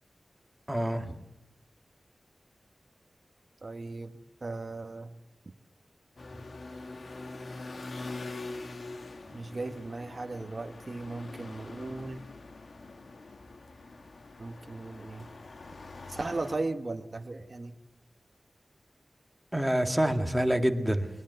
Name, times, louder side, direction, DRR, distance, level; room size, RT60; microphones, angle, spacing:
voice 1, 0.7-1.2 19.5-21.1, right 1 dB, 10° right, 6 dB, 1.9 m, -27 dB
voice 2, 3.6-4.1 4.4-5.2 9.3-12.3 14.4-15.3 16.1-17.8, right 2 dB, 40° right, 7 dB, 1.4 m, -37 dB
sound 1, 6.2-16.6, left 3 dB, 65° left, 1.8 m, -44 dB
22.5 x 21.0 x 8.0 m, 0.82 s
wide cardioid pair, 105°, 0 cm